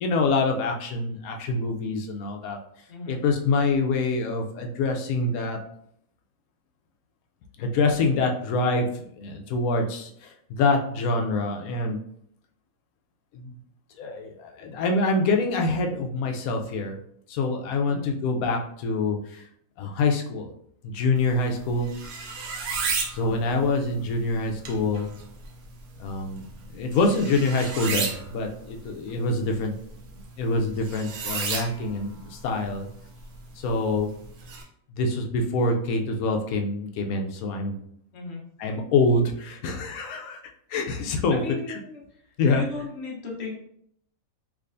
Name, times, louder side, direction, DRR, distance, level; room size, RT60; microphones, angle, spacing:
voice 1, 0.0-2.6 3.1-5.6 7.6-12.0 13.3-13.5 14.0-17.0 17.3-19.4 19.8-20.5 20.8-21.9 23.1-25.1 26.0-29.7 30.4-32.9 33.6-34.1 35.0-37.8 38.6-40.4 40.7-41.8 42.4-42.7, left 3 dB, 85° left, 3 dB, 1.1 m, -25 dB
sound 1, 21.2-34.6, right 5 dB, 90° right, 1.2 m, -35 dB
voice 2, 41.3-42.0 42.5-43.6, left 3 dB, 50° left, -2 dB, 1.1 m, -36 dB
3.5 x 3.2 x 2.5 m, 0.68 s
omnidirectional pair, 1.5 m